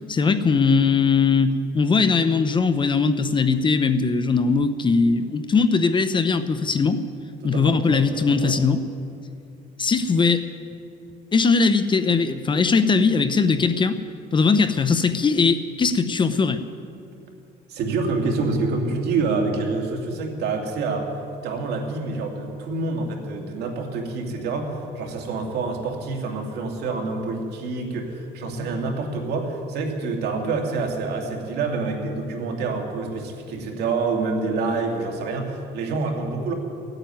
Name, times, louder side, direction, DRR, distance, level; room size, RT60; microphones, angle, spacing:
voice 1, 0.1-7.0 7.4-8.8 9.8-10.5 11.3-14.0 14.3-16.6, left 4 dB, 30° left, 10 dB, 0.8 m, -20 dB
voice 2, 7.4-8.6 17.7-21.1 21.4-36.5, right 3 dB, 75° right, 1 dB, 2.4 m, -27 dB
16.0 x 9.0 x 9.4 m, 2.4 s
cardioid pair, 110°, 17 cm